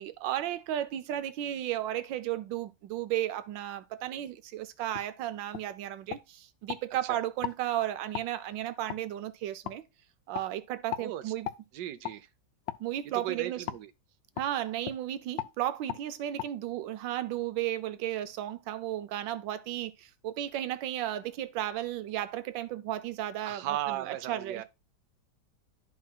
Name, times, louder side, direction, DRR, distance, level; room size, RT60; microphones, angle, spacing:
voice 1, 0.0-9.8 10.3-11.5 12.8-13.7 14.4-24.6, right 12 dB, 85° right, 1.3 m, -34 dB
sound 1, 4.9-5.1 5.5-5.7 6.1-6.8 7.4-7.6 8.1-8.3 8.9-9.0 9.6-9.8 10.3-10.5 10.9-11.1 11.4-11.6 12.0-12.2 12.7-12.8 13.7-13.8 14.4-14.5 14.8-15.0 15.4-15.5 15.9-16.0 16.4-16.5, left 12 dB, 80° left, 1.2 m, -37 dB
voice 2, 11.0-11.3 11.7-12.3 13.2-13.9 23.4-24.6, right 12 dB, 65° right, 1.2 m, -36 dB
12.0 x 4.7 x 2.3 m
omnidirectional pair, 2.0 m